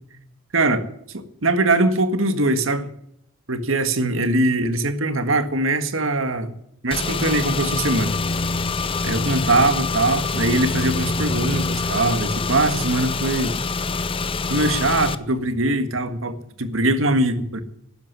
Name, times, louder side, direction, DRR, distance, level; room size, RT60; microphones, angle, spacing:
voice 1, 0.5-0.9 1.1-2.9 3.5-6.6 6.8-8.2 9.0-13.6 14.5-17.6, right 2 dB, 80° right, 9 dB, 1.7 m, -21 dB
Car / Engine, 6.9-15.2, left 4 dB, 25° left, 0.6 m, -25 dB
12.5 x 11.0 x 8.2 m, 0.73 s
head